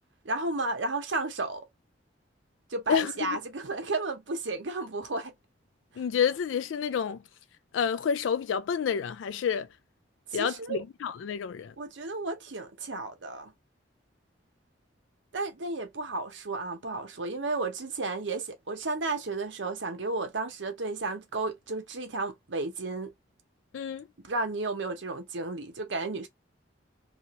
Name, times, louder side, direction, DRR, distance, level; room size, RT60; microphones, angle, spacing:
voice 1, 0.2-1.7 2.7-5.3 10.3-10.8 11.8-13.5 15.3-23.1 24.2-26.3, right 3 dB, 80° right, 0.9 m, -33 dB
voice 2, 2.9-3.4 6.0-7.2 7.7-9.7 10.3-11.7 23.7-24.1, left 7 dB, 90° left, 0.3 m, -29 dB
2.8 x 2.6 x 2.9 m
head